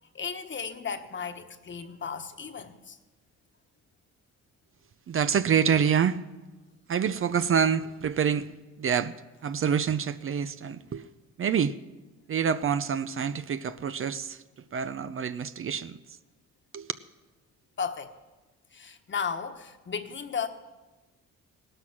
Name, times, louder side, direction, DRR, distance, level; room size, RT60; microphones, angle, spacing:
voice 1, 0.0-3.0 17.8-18.1 18.7-20.5, left 6 dB, 40° left, 1.4 m, -35 dB
voice 2, 5.1-6.2 6.9-8.5 8.8-9.1 9.4-11.0 11.4-11.7 12.3-14.4 14.7-16.0 16.7-16.9, right 7 dB, 45° right, 0.7 m, -26 dB
17.5 x 12.5 x 6.1 m
cardioid pair, 90°, 30 cm